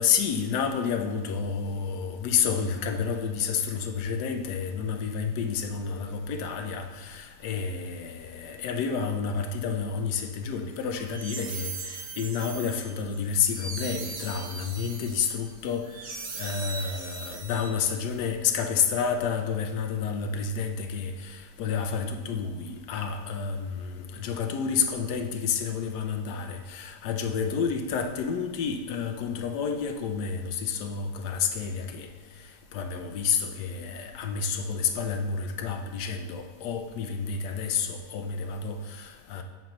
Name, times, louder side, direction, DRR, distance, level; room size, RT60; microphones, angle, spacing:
voice 1, 0.0-15.9 16.4-32.1 32.7-39.4, left 6 dB, 75° left, 5 dB, 1.2 m, -30 dB
sound 1, 10.8-18.1, right 4 dB, 65° right, 1.3 m, -40 dB
7.6 x 5.4 x 3.0 m, 1.4 s
omnidirectional pair, 1.8 m